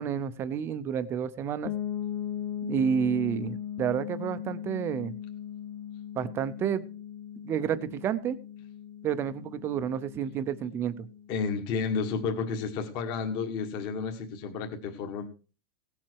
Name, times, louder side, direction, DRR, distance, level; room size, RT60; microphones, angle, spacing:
voice 1, 0.0-1.7 2.6-5.1 6.2-6.9 7.4-8.4 9.0-11.1, right 8 dB, 15° right, 13 dB, 0.6 m, -30 dB
sound 1, 1.6-11.3, left 9 dB, 55° left, 1.5 m, -38 dB
voice 2, 11.3-15.3, left 5 dB, 30° left, 4 dB, 1.6 m, -31 dB
17.5 x 7.5 x 4.6 m, 0.35 s
supercardioid pair, 180°, 14 cm